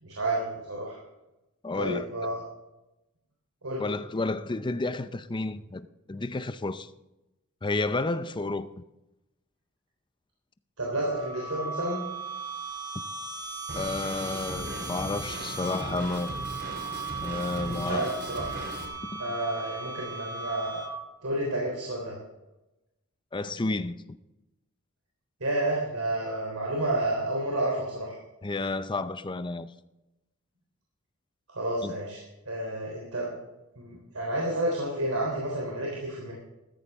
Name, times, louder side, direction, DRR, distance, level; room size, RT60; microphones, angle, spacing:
voice 1, 0.0-1.0 1.7-2.4 3.6-3.8 10.8-12.0 17.5-18.6 19.2-20.8 21.2-22.1 25.4-28.1 31.5-32.2 32.5-33.3 33.8-36.3, right 1 dB, 75° right, 3.6 m, -30 dB
voice 2, 1.6-2.1 3.8-6.9 7.6-8.7 13.8-16.5 17.2-18.1 19.1-19.2 23.3-24.0 28.4-29.7 31.8-31.9, left 2 dB, 20° left, 0.6 m, -31 dB
sound 1, 10.8-21.2, right 3 dB, 20° right, 1.1 m, -38 dB
Drum kit, 13.7-18.9, right 1 dB, 50° right, 3.2 m, -38 dB
14.0 x 14.0 x 3.6 m
head